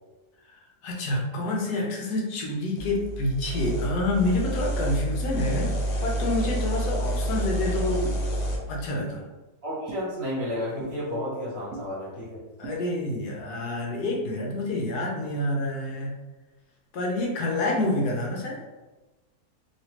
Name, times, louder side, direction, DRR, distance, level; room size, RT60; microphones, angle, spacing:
voice 1, 0.8-5.7 6.0-8.1 8.7-9.2 12.6-16.1 16.9-18.6, left 1 dB, 75° left, -1 dB, 1.2 m, -28 dB
sound 1, 2.8-8.6, right 1 dB, 55° left, 0.8 m, -28 dB
sound 2, 8.0-8.2 9.0-9.1 9.9-10.0 10.8-10.9 11.7-11.9 12.6-12.8, right 5 dB, 80° right, 1.1 m, -38 dB
voice 2, 9.6-12.4, left 1 dB, 45° right, -6 dB, 1.0 m, -32 dB
3.1 x 2.7 x 2.9 m, 1.2 s
omnidirectional pair, 1.7 m